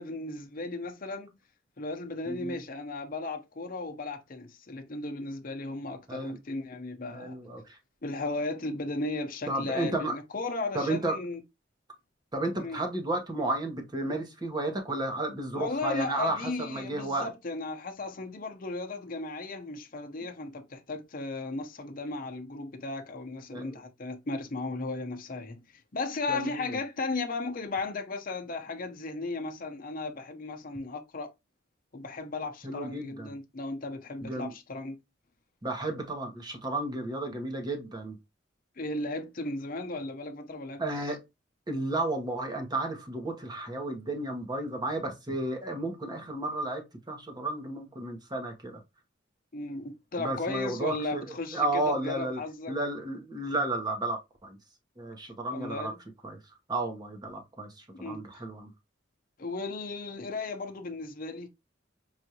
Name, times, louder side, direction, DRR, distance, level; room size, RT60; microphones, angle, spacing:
voice 1, 0.0-1.3 1.8-7.4 8.0-11.4 12.6-12.8 15.5-31.3 31.9-35.0 38.8-41.1 49.5-52.8 55.5-56.0 57.9-58.2 59.4-61.5, left 3 dB, 50° left, 0.7 m, -36 dB
voice 2, 2.3-2.6 6.1-6.4 7.1-7.8 9.5-10.2 10.7-11.2 12.3-17.3 23.5-23.7 26.3-26.8 32.6-33.3 34.2-34.5 35.6-38.2 40.8-41.2 41.7-48.8 50.2-52.4 52.7-54.6 55.0-55.9 56.2-58.7, right 2 dB, 20° right, 1.0 m, -33 dB
4.9 x 2.6 x 2.8 m
head